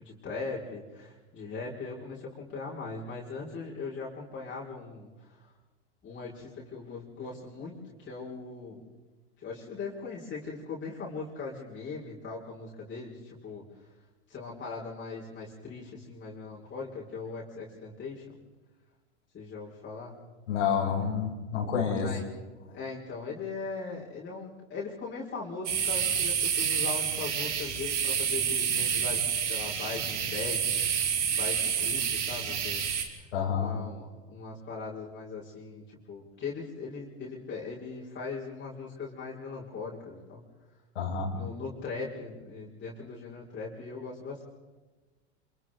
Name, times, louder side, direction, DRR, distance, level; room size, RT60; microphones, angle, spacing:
voice 1, 0.0-5.5 6.0-8.8 9.4-13.6 14.3-18.4 19.3-20.1 22.0-22.3 22.7-30.9 31.3-32.8 33.5-40.4 41.3-44.4, left 4 dB, 35° left, -5 dB, 5.8 m, -39 dB
voice 2, 20.5-22.1 33.3-33.7 41.0-41.3, left 7 dB, 85° left, -3 dB, 5.3 m, -28 dB
sound 1, 25.7-33.0, right 7 dB, 85° right, 3.0 m, -29 dB
28.0 x 27.0 x 3.9 m, 1.2 s
hypercardioid pair, 95°, 34 cm